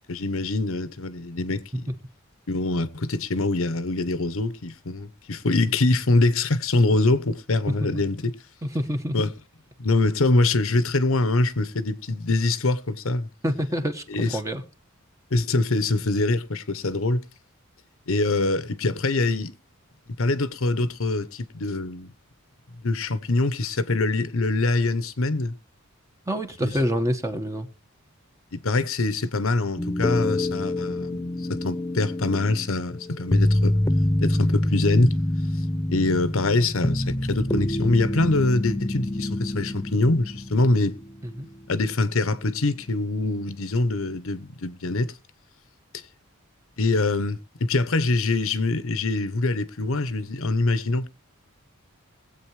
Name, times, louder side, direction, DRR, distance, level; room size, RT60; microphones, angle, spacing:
voice 1, 0.1-1.9 2.5-8.3 9.1-9.3 9.8-13.3 14.1-14.4 15.3-17.2 18.1-19.5 20.2-22.1 22.8-25.5 26.6-26.7 28.5-33.8 34.2-35.2 35.9-41.0 41.7-45.1 46.8-51.1, left 2 dB, 70° left, 1.0 m, -24 dB
voice 2, 7.7-8.1 8.6-9.2 13.4-14.6 26.3-27.7 41.2-41.5, equal, 15° right, 1.4 m, -27 dB
sound 1, 29.8-41.8 42.1-42.2, left 1 dB, 15° left, 0.5 m, -26 dB
21.0 x 8.3 x 3.2 m
head